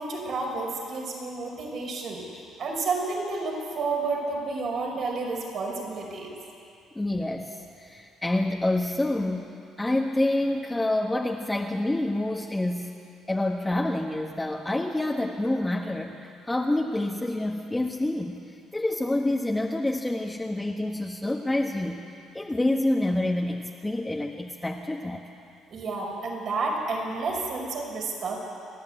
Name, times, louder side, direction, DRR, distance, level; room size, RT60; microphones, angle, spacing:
voice 1, 0.0-2.2 2.6-6.3 25.7-28.4, right 3 dB, 60° right, 0 dB, 5.4 m, -30 dB
voice 2, 6.9-9.5 9.8-12.9 13.3-22.0 22.3-25.2, left 1 dB, 15° left, 0 dB, 1.4 m, -27 dB
28.5 x 10.5 x 8.9 m, 2.5 s
supercardioid pair, 75°, 0 cm